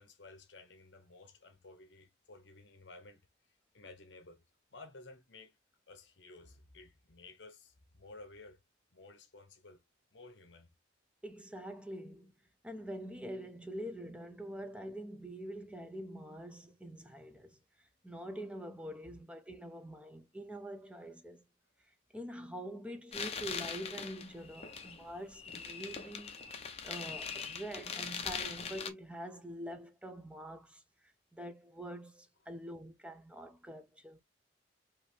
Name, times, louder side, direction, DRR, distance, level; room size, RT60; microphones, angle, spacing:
voice 1, 0.0-3.2 3.7-4.4 4.7-5.5 5.9-8.6 8.9-9.8 10.1-10.7 19.1-19.2, left 3 dB, 65° left, 1.0 m, -54 dB
voice 2, 11.2-12.3 12.6-17.6 18.0-21.4 22.1-26.3 26.8-30.8 31.3-34.2, equal, 5° right, 0.7 m, -45 dB
sound 1, 23.1-28.9, left 6 dB, 30° left, 0.9 m, -41 dB
5.3 x 3.0 x 3.3 m
head